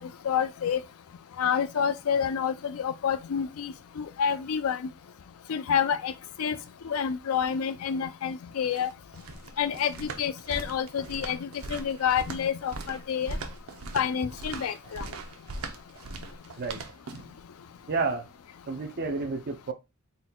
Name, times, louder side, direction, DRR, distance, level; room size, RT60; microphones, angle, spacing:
voice 1, 0.2-0.8 1.4-4.8 5.5-6.1 6.4-6.6 6.8-8.9 9.6-13.4 13.9-15.0, left 7 dB, 85° left, 0.4 m, -28 dB
sound 1, 8.5-17.4, right 3 dB, 85° right, 0.7 m, -40 dB
voice 2, 17.9-18.3 18.7-19.7, right 4 dB, 50° right, 0.5 m, -30 dB
4.1 x 3.9 x 2.2 m
head